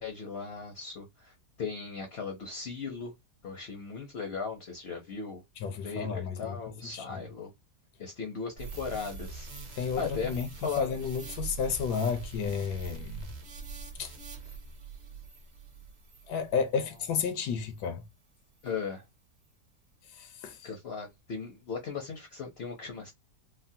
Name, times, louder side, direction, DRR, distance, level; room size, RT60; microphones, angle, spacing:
voice 1, 0.0-3.1 3.4-5.4 5.8-7.5 8.0-11.0 18.6-19.0 20.6-23.1, left 5 dB, 60° left, 0.6 m, -37 dB
voice 2, 5.6-6.6 6.9-7.2 9.8-10.5 10.8-13.3 14.0-14.1 16.3-18.0 20.2-20.6, left 6 dB, 85° left, 1.2 m, -32 dB
sound 1, 8.6-17.2 17.7-17.9, right 4 dB, 50° right, 0.9 m, -43 dB
3.5 x 2.0 x 2.6 m
omnidirectional pair, 1.8 m